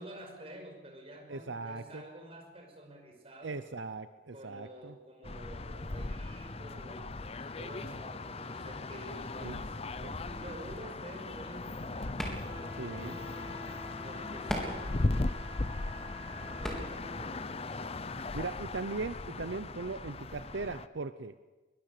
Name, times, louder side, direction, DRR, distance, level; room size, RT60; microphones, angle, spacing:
voice 1, 0.0-3.6 4.3-9.8 10.1-12.3 12.8-13.7 14.0-15.5 16.3-17.7, right 1 dB, 30° right, 2 dB, 5.5 m, -49 dB
voice 2, 1.3-2.0 3.4-4.9 9.4-9.6 10.0-10.2 12.8-13.2 18.3-21.4, right 3 dB, 80° right, 11 dB, 0.8 m, -39 dB
sound 1, 5.2-20.9, left 2 dB, 35° left, 0.7 m, -38 dB
sound 2, 11.5-17.5, equal, 5° left, 3.8 m, -42 dB
Wind instrument woodwind instrument, 12.5-16.9, left 1 dB, 15° right, 2.2 m, -49 dB
22.5 x 21.5 x 6.8 m, 1.2 s
head